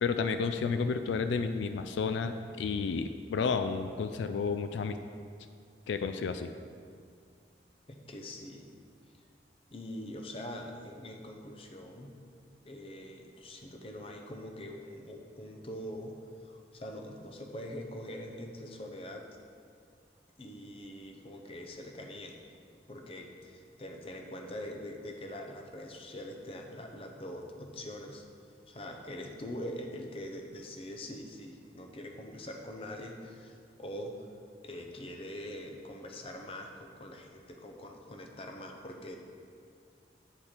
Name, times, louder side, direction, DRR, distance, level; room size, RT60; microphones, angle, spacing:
voice 1, 0.0-5.0 5.9-6.5, left 5 dB, 80° left, 8 dB, 0.3 m, -31 dB
voice 2, 7.9-8.7 9.7-12.1 12.6-16.2 16.4-19.4 20.4-22.4 22.9-28.2 28.7-34.3 34.6-39.2, left 1 dB, 30° left, 3 dB, 0.6 m, -43 dB
8.9 x 4.4 x 5.0 m, 2.2 s
head